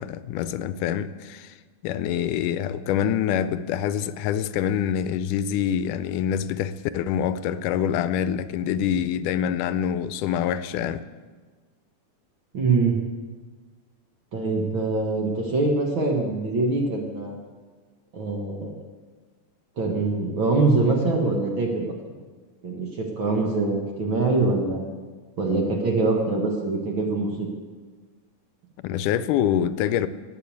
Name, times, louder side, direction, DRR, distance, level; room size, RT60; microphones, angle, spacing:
voice 1, 0.0-1.6 1.8-11.0 28.8-30.1, left 9 dB, 80° left, 13 dB, 2.1 m, -25 dB
voice 2, 12.5-13.0 14.3-17.4 18.1-18.7 19.8-21.9 22.6-24.9 25.4-27.5, right 3 dB, 50° right, 1 dB, 1.8 m, -24 dB
18.0 x 6.8 x 8.3 m, 1.4 s
omnidirectional pair, 3.7 m